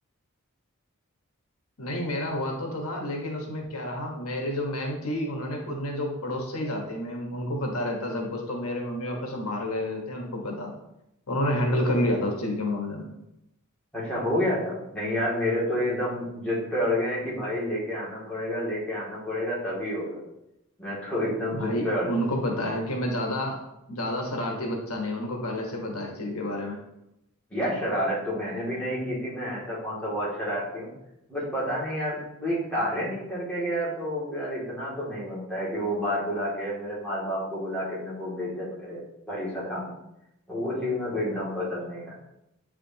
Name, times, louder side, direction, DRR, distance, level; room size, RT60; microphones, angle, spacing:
voice 1, 1.8-10.7 11.3-13.0 21.5-23.6 23.9-26.8, left 1 dB, 80° left, 1 dB, 1.3 m, -29 dB
voice 2, 13.9-20.2 20.8-22.2 27.5-30.9 31.3-39.0 39.3-39.9 40.5-42.2, equal, 5° left, -8 dB, 2.4 m, -29 dB
8.5 x 5.0 x 2.9 m, 0.86 s
head